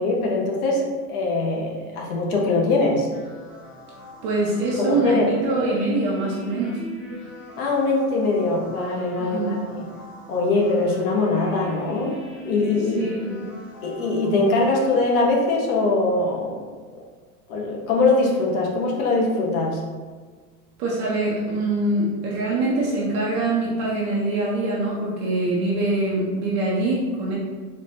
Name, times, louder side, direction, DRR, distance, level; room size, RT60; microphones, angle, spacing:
voice 1, 0.0-3.1 4.8-5.3 7.6-9.8 10.3-12.2 12.4-13.1 13.8-16.6 17.5-19.8, left 3 dB, 70° left, -1 dB, 1.0 m, -22 dB
sound 1, 3.1-15.0, left 1 dB, 30° left, 0.9 m, -41 dB
voice 2, 4.2-6.8 9.2-9.6 12.9-13.4 20.8-27.3, right 2 dB, 30° right, -4 dB, 0.4 m, -24 dB
4.2 x 2.5 x 2.7 m, 1.4 s
supercardioid pair, 160°, 44 cm